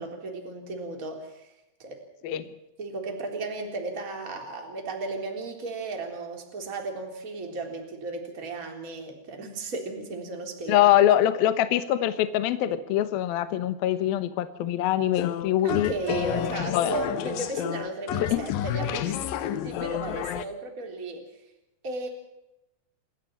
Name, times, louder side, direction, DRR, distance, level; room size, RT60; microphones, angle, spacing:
voice 1, 0.0-1.5 1.8-2.0 2.3-2.4 2.8-10.9 15.6-21.2 21.8-22.1, right 3 dB, 20° right, 2 dB, 3.4 m, -35 dB
voice 2, 10.7-17.0 18.2-18.5, left 12 dB, 70° left, 11 dB, 2.5 m, -24 dB
sound 1, 15.1-20.4, left 12 dB, 90° left, 2.0 m, -31 dB
29.0 x 13.5 x 7.4 m, 0.89 s
omnidirectional pair, 5.5 m